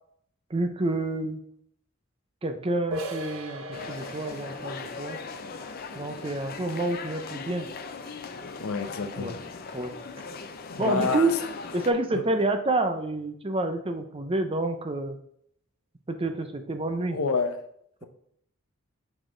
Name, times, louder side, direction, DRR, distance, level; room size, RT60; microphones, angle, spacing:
voice 1, 0.5-1.4 2.4-5.2 5.9-7.7 9.2-9.4 9.7-10.0 10.8-11.4 11.7-15.2 16.1-17.2, right 2 dB, 25° right, 7 dB, 0.6 m, -28 dB
sound 1, 2.9-8.4, equal, 75° right, 0.8 m, -40 dB
sound 2, 3.7-11.9, left 4 dB, 45° left, 0.5 m, -39 dB
voice 2, 8.6-9.3 10.7-11.3 17.1-17.5, left 4 dB, 85° left, 8 dB, 0.7 m, -28 dB
6.2 x 4.9 x 3.8 m, 0.68 s
head